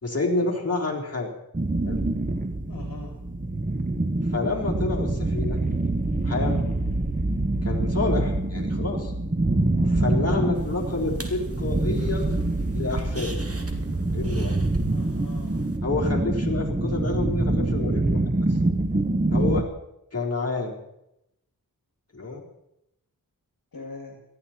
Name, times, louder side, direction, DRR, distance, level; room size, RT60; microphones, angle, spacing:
voice 1, 0.0-1.3 1.9-2.0 4.3-5.6 6.2-6.7 7.6-9.1 9.9-12.3 12.7-13.4 14.1-14.5 15.8-18.2 18.5-18.6 19.3-19.7 20.1-20.8 22.1-22.4, left 3 dB, 40° left, -1 dB, 3.7 m, -29 dB
sound 1, 1.5-19.6, right 2 dB, 20° right, 1.2 m, -25 dB
voice 2, 2.7-3.2 10.1-10.5 14.9-15.7 23.7-24.2, left 3 dB, 65° left, 2 dB, 2.5 m, -41 dB
sound 2, 10.6-15.8, right 1 dB, 40° right, 2.3 m, -39 dB
19.5 x 14.0 x 4.4 m, 0.84 s
wide cardioid pair, 60°, 37 cm